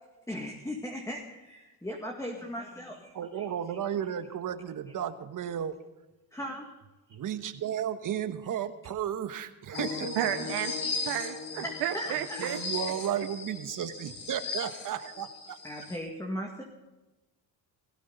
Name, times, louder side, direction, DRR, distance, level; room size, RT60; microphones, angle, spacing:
voice 1, 0.3-3.5 6.3-6.7 11.6-12.4 15.6-16.6, equal, 10° left, 0 dB, 2.1 m, -38 dB
voice 2, 3.1-5.8 7.1-10.5 12.4-15.6, right 9 dB, 50° right, 9 dB, 1.3 m, -34 dB
sound 1, 9.7-16.0, left 4 dB, 70° left, 5.1 m, -37 dB
voice 3, 10.2-12.6, right 12 dB, 75° right, 8 dB, 0.9 m, -32 dB
17.0 x 16.5 x 4.1 m, 1.1 s
cardioid pair, 90°, 41 cm